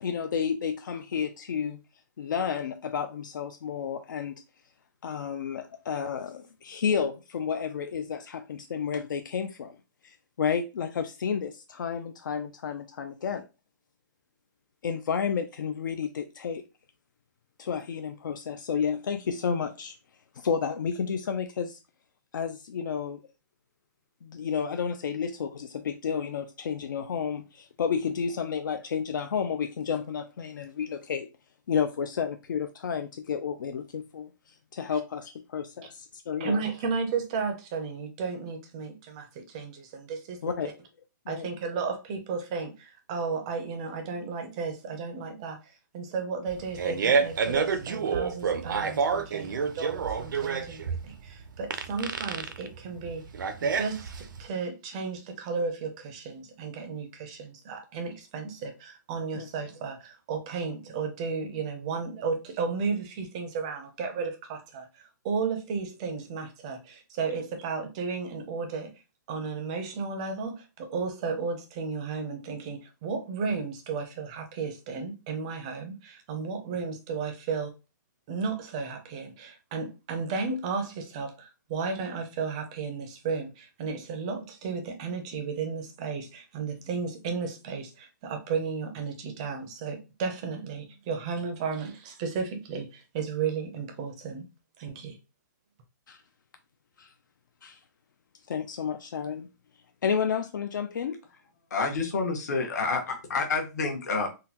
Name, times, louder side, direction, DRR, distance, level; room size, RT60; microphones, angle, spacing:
voice 1, 0.0-1.8 2.2-4.3 5.0-9.7 10.0-13.4 14.8-16.6 17.6-20.0 20.4-21.8 22.3-23.2 24.2-31.3 31.7-36.6 40.4-40.7 41.3-41.5 59.3-59.5 96.1-96.2 97.0-97.1 97.6-97.8 98.5-99.5 100.0-101.2, left 7 dB, 75° left, 0.4 m, -31 dB
voice 2, 36.4-40.4 41.3-45.6 45.9-53.2 53.6-68.9 69.3-77.7 78.3-94.5 94.8-95.2, right 5 dB, 20° right, 0.4 m, -34 dB
Fart, 46.5-54.4, right 5 dB, 85° right, 0.5 m, -28 dB
voice 3, 101.7-104.3, left 4 dB, 60° left, 1.0 m, -28 dB
3.7 x 2.1 x 2.8 m
hypercardioid pair, 175°, 11 cm